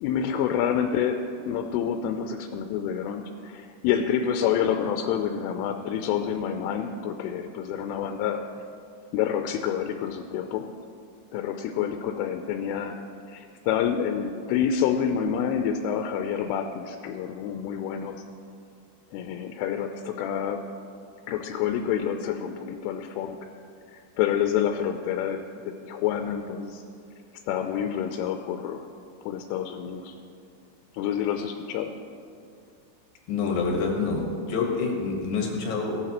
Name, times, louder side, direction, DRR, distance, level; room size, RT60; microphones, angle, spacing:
voice 1, 0.0-1.2 1.5-8.4 9.1-10.7 11.3-12.9 13.3-18.2 19.1-20.6 21.3-23.4 23.9-26.8 27.5-28.9 29.2-30.1 30.9-31.9, left 8 dB, 85° left, 5 dB, 3.1 m, -28 dB
voice 2, 33.3-36.0, left 4 dB, 65° left, -1 dB, 2.4 m, -27 dB
17.0 x 13.0 x 3.0 m, 2.4 s
omnidirectional pair, 5.7 m